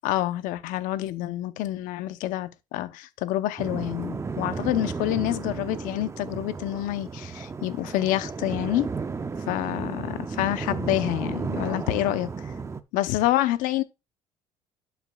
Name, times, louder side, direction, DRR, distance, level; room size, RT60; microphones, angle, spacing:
voice 1, 0.0-8.9 9.5-12.5 12.9-13.8, left 14 dB, 80° left, 0.9 m, -27 dB
sound 1, 3.6-12.8, right 4 dB, 20° right, 0.6 m, -33 dB
11.5 x 5.8 x 2.4 m
cardioid pair, 100°, 14 cm